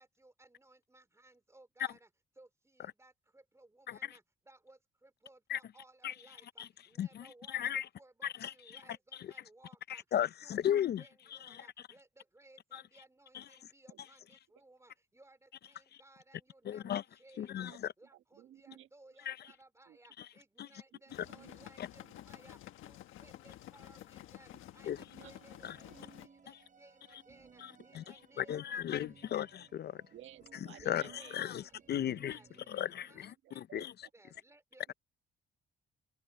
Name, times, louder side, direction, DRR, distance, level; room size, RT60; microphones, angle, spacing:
voice 1, 0.0-2.1 2.4-10.0 10.4-29.4 30.8-34.9, right 2 dB, 15° right, 4.2 m, -62 dB
voice 2, 3.9-4.2 5.5-5.6 6.0-6.1 6.6-6.7 7.0-7.9 8.2-8.8 9.1-9.3 9.9-11.0 11.3-11.7 12.7-12.8 13.3-13.4 15.9-16.0 16.6-17.0 17.4-17.9 19.3-19.4 20.2-20.3 20.6-20.7 21.8-21.9 24.8-25.0 25.6-25.8 26.5-26.6 27.1-27.2 27.6-30.0 30.9-32.4 32.7-33.9, left 10 dB, 55° left, 0.5 m, -36 dB
voice 3, 18.1-18.9 19.9-20.0 20.9-21.0 21.3-21.6 25.0-25.3 25.6-26.0 27.8-28.1 30.1-31.4 33.4-33.9, right 12 dB, 80° right, 1.4 m, -56 dB
sound 1, 21.1-26.3, left 13 dB, 85° left, 1.4 m, -52 dB
sound 2, 25.2-33.2, right 5 dB, 40° right, 4.0 m, -61 dB
cardioid pair, 90°, 20 cm